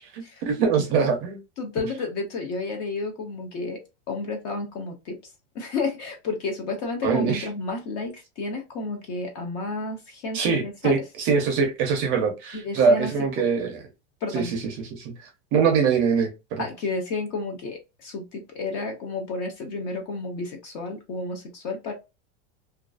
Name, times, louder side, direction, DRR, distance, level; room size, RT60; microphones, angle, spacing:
voice 1, 0.1-1.4 7.0-7.5 10.3-13.8 14.3-15.1 15.5-16.6, right 5 dB, 30° right, 0.5 m, -23 dB
voice 2, 1.6-3.8 4.1-5.2 5.5-10.9 12.5-13.1 14.2-14.5 16.6-21.9, left 3 dB, 30° left, 0.4 m, -31 dB
2.4 x 2.3 x 2.3 m
supercardioid pair, 180°, 33 cm